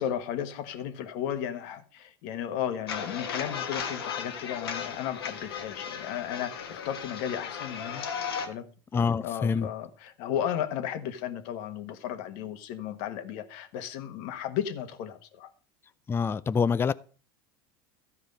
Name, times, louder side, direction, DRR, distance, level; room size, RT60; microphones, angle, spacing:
voice 1, 0.0-8.6 8.9-15.5, left 10 dB, 65° left, 1.4 m, -34 dB
sound 1, 2.9-8.5, left 7 dB, 90° left, 1.6 m, -36 dB
voice 2, 8.9-9.7 16.1-16.9, left 5 dB, 20° left, 0.4 m, -26 dB
14.0 x 4.9 x 5.3 m
hypercardioid pair, 90°, 12 cm